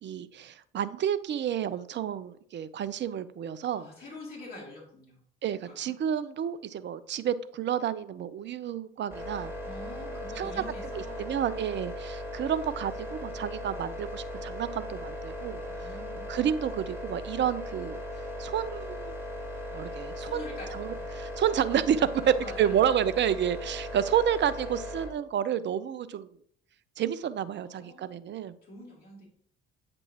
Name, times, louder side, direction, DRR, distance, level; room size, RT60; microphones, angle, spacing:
voice 1, 0.0-3.9 5.4-9.5 10.1-10.5 10.9-15.9 16.3-18.0 18.4-19.1 19.7-26.3 27.0-28.5, right 9 dB, 40° right, 15 dB, 0.5 m, -30 dB
voice 2, 3.7-5.2 5.6-5.7 9.6-11.3 15.7-16.4 20.2-21.2 22.2-23.0 27.6-28.2 28.6-29.3, left 1 dB, 30° left, -4 dB, 2.8 m, -46 dB
sound 1, 9.1-25.1, left 1 dB, 10° right, 2.1 m, -38 dB
8.3 x 5.3 x 2.9 m, 0.63 s
hypercardioid pair, 50°, 29 cm